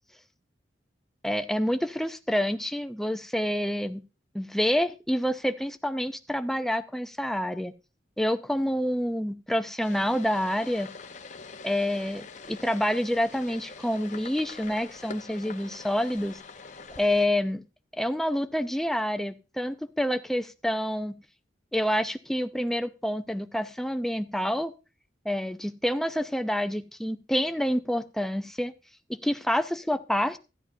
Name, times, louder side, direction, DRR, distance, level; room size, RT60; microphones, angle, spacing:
voice 1, 1.2-4.0 4.3-7.7 8.2-10.9 11.6-16.4 17.0-17.6 17.9-21.2 21.7-24.7 25.2-28.7 29.1-30.4, equal, ahead, 10 dB, 0.4 m, -28 dB
sound 1, 9.8-17.3, left 4 dB, 40° left, 0.7 m, -44 dB
13.0 x 10.5 x 2.6 m, 0.30 s
head